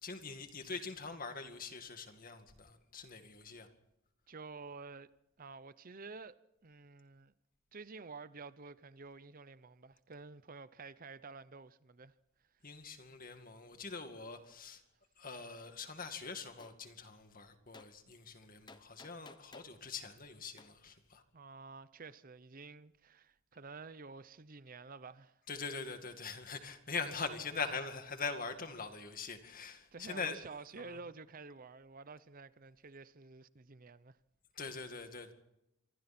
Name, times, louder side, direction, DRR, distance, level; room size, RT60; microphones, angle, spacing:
voice 1, 0.0-3.7 12.6-14.8 15.2-21.2 25.5-30.4 30.8-31.0 34.6-35.3, left 4 dB, 40° left, 2.2 m, -43 dB
voice 2, 4.3-5.1 5.4-6.4 6.6-7.3 7.7-12.1 21.3-25.4 29.9-34.2, right 4 dB, 40° right, 0.7 m, -50 dB
Gunshot gunfire, 16.6-16.8 17.7-17.9 18.7-19.8 20.6-20.7, left 3 dB, 20° left, 1.0 m, -55 dB
27.0 x 23.5 x 4.4 m
head